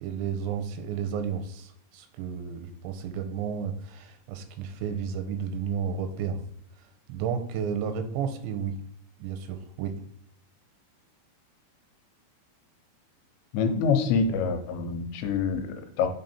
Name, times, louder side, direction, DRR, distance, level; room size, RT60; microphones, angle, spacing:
voice 1, 0.0-6.4 7.1-8.8 9.2-10.0, right 7 dB, 90° right, 7 dB, 2.9 m, -32 dB
voice 2, 13.5-16.1, left 5 dB, 85° left, 7 dB, 2.9 m, -26 dB
6.7 x 3.6 x 4.2 m, 0.70 s
omnidirectional pair, 5.0 m